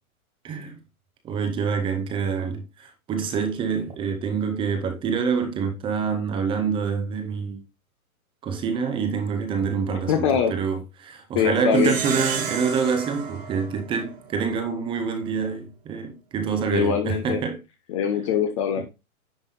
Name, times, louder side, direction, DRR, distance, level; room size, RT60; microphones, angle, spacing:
voice 1, 0.4-0.8 1.2-7.6 8.4-17.6 18.8-18.9, right 6 dB, 10° right, 0.8 m, -26 dB
voice 2, 9.9-10.5 11.3-11.9 16.7-17.4 17.9-18.8, left 8 dB, 20° left, 0.6 m, -23 dB
Plucked string instrument, 11.7-14.5, right 6 dB, 60° right, 2.2 m, -32 dB
10.0 x 3.4 x 4.0 m
hypercardioid pair, 140°, 43 cm